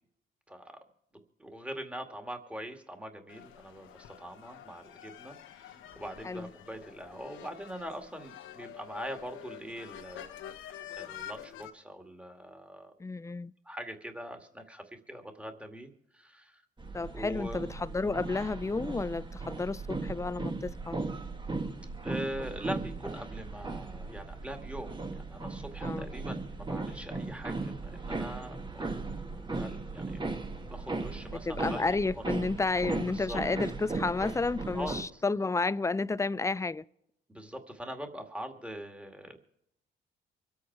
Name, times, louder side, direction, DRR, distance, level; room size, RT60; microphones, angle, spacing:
voice 1, 0.5-0.8 1.4-10.4 10.9-12.9 13.6-16.6 17.1-17.7 22.0-29.3 29.6-30.3 30.7-31.9 32.2-32.3 33.1-33.4 34.7-35.2 37.3-39.4, equal, 5° right, 2.1 m, -42 dB
sound 1, 3.3-11.7, left 11 dB, 80° left, 1.2 m, -47 dB
voice 2, 13.0-13.5 16.9-21.0 25.8-26.1 31.3-36.8, left 3 dB, 15° left, 0.5 m, -31 dB
sound 2, 16.8-35.0, right 3 dB, 25° right, 1.5 m, -37 dB
sound 3, 22.3-32.5, right 2 dB, 50° right, 5.6 m, -59 dB
25.0 x 8.5 x 4.7 m
cardioid pair, 90°, 20 cm